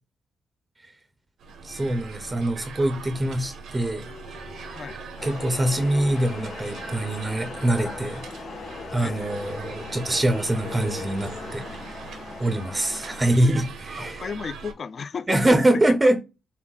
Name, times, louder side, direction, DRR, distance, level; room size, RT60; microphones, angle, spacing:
sound 1, 1.4-14.7, right 5 dB, 80° right, 1.0 m, -41 dB
voice 1, 1.6-4.1 4.7-4.8 5.2-8.2 8.9-11.6 12.4-14.2 15.3-16.2, right 1 dB, 15° right, 0.5 m, -24 dB
sound 2, 3.7-11.7, left 5 dB, 80° left, 2.5 m, -43 dB
sound 3, 5.2-13.2, left 3 dB, 60° left, 2.9 m, -39 dB
voice 2, 9.0-9.5 14.0-15.6 15.9-16.2, left 6 dB, 40° left, 0.3 m, -35 dB
5.9 x 2.2 x 3.9 m
wide cardioid pair, 155°, 0 cm